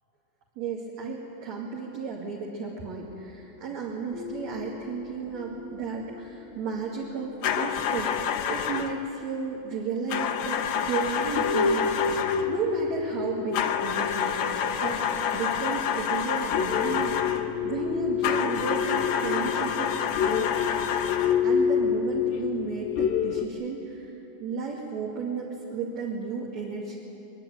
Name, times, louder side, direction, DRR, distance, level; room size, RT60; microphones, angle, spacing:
voice 1, 0.6-8.1 8.5-17.2 17.6-20.5 21.1-24.1 24.4-27.0, right 5 dB, 55° right, -3 dB, 3.4 m, -33 dB
sound 1, 4.1-8.1 8.5-8.6 9.7-9.8 10.3-10.4 10.9-11.1 11.3-23.5, left 7 dB, 85° left, 2.7 m, -29 dB
sound 2, 7.4-9.0 10.1-12.6 13.5-17.5 18.2-21.5, left 8 dB, 65° left, 1.9 m, -28 dB
23.0 x 22.0 x 9.2 m, 3.0 s
omnidirectional pair, 4.1 m